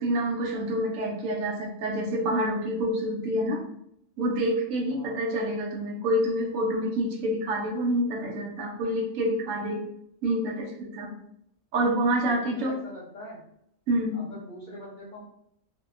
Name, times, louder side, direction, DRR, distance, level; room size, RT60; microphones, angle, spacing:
voice 1, 0.0-3.6 4.2-9.9 10.2-11.1 11.7-12.8 13.9-14.2, right 1 dB, 80° right, 0 dB, 1.0 m, -27 dB
voice 2, 12.2-13.4 14.1-15.2, left 1 dB, 50° left, -6 dB, 0.6 m, -43 dB
2.7 x 2.1 x 2.4 m, 0.75 s
omnidirectional pair, 1.4 m